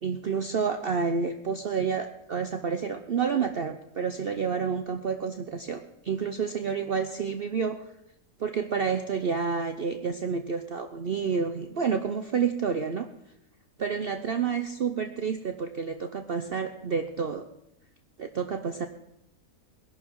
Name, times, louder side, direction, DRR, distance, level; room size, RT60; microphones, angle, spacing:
voice 1, 0.0-7.8 8.4-13.1 13.8-17.4 18.2-18.9, right 6 dB, 50° right, 7 dB, 0.8 m, -29 dB
21.0 x 11.5 x 4.7 m, 0.84 s
omnidirectional pair, 1.6 m